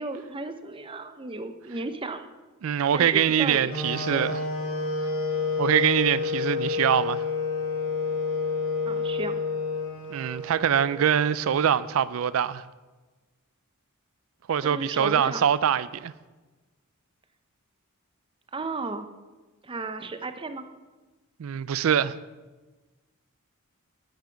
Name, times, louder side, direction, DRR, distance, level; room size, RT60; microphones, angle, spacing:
voice 1, 0.0-2.3 2.9-4.4 8.8-9.4 14.6-15.5 18.5-19.1 19.6-20.6, right 3 dB, 25° right, 0.6 m, -34 dB
voice 2, 2.6-4.4 5.6-7.2 10.1-12.6 14.5-16.1 21.4-22.2, right 8 dB, 70° right, 0.4 m, -24 dB
sound 1, 3.7-11.7, left 4 dB, 75° left, 3.2 m, -29 dB
9.1 x 7.3 x 5.7 m
head